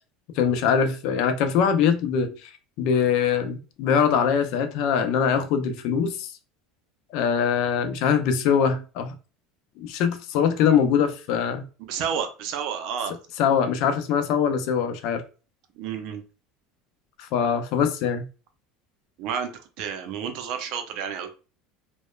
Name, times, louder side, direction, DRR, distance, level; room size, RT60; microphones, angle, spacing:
voice 1, 0.4-2.5 2.8-6.3 7.1-9.2 9.8-11.6 13.4-15.2 17.2-18.3, left 7 dB, 65° left, 0.4 m, -23 dB
voice 2, 11.8-13.2 15.7-16.2 19.2-21.3, right 7 dB, 65° right, 0.5 m, -30 dB
2.9 x 2.1 x 2.2 m
supercardioid pair, 105°, 0 cm